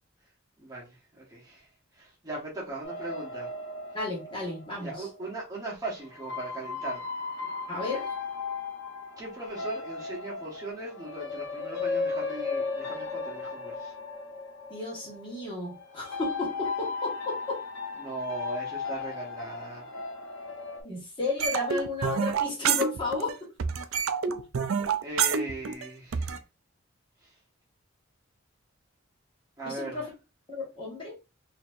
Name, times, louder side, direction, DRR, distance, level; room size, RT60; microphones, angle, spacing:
voice 1, 0.6-1.6 2.0-3.5 4.8-7.0 9.2-13.9 18.0-19.8 25.0-26.4 27.2-27.3 29.6-30.0, right 2 dB, 20° right, 1.3 m, -39 dB
sound 1, 2.8-5.4 6.1-20.8, left 4 dB, 60° left, 1.3 m, -36 dB
voice 2, 3.9-5.1 7.7-8.1 14.7-17.6 20.8-23.5 29.6-30.1 30.5-31.2, left 3 dB, 25° left, 1.5 m, -33 dB
sound 2, 21.4-23.3 23.6-26.4, right 7 dB, 90° right, 0.4 m, -28 dB
4.3 x 2.8 x 2.5 m
head